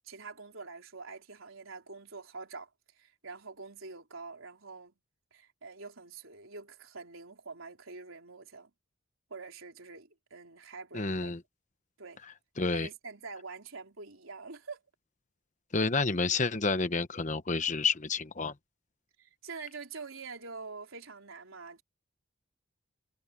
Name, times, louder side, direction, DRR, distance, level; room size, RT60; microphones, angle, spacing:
voice 1, 0.0-2.7 3.0-4.9 5.3-8.7 9.3-11.3 12.0-12.2 12.7-14.8 19.2-21.8, right 4 dB, 75° right, 3.7 m, -45 dB
voice 2, 10.9-11.4 12.6-12.9 15.7-18.5, left 4 dB, 35° left, 1.0 m, -29 dB
head